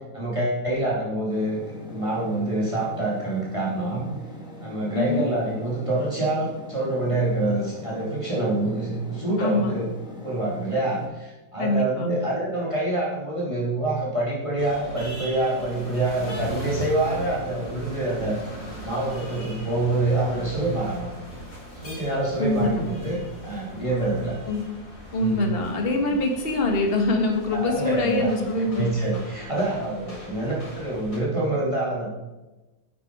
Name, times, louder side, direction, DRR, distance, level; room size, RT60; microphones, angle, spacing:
voice 1, 0.1-1.6 1.9-4.0 4.6-9.8 10.2-18.4 18.8-21.1 21.8-24.4 25.2-25.4 27.5-28.4 28.8-32.1, right 2 dB, 20° right, -6 dB, 3.0 m, -26 dB
sound 1, 1.3-11.1, left 2 dB, 5° right, 2.3 m, -40 dB
voice 2, 4.9-5.3 9.4-9.7 11.6-12.1 22.4-22.9 24.5-24.6 25.1-28.9, left 2 dB, 40° left, 2 dB, 1.8 m, -24 dB
sound 2, 14.6-31.2, equal, 75° left, 5.0 m, -39 dB
10.5 x 8.4 x 4.8 m, 1.1 s
omnidirectional pair, 1.7 m